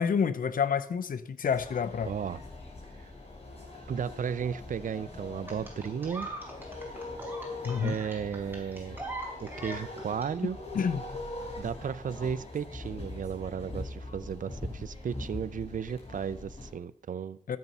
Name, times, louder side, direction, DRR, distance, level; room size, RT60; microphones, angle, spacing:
voice 1, 0.0-2.1 7.6-8.0 10.7-11.0 17.5-17.6, left 6 dB, 80° left, 12 dB, 0.6 m, -28 dB
sound 1, 1.5-16.7, left 2 dB, 45° left, 5.1 m, -42 dB
voice 2, 2.1-2.4 3.9-6.3 7.8-9.0 9.4-10.6 11.6-17.4, right 7 dB, 70° right, 16 dB, 0.5 m, -34 dB
sound 2, 5.5-10.3 11.5-11.6, right 1 dB, 15° right, 4.7 m, -41 dB
13.5 x 9.5 x 5.5 m, 0.68 s
wide cardioid pair, 75°, 14 cm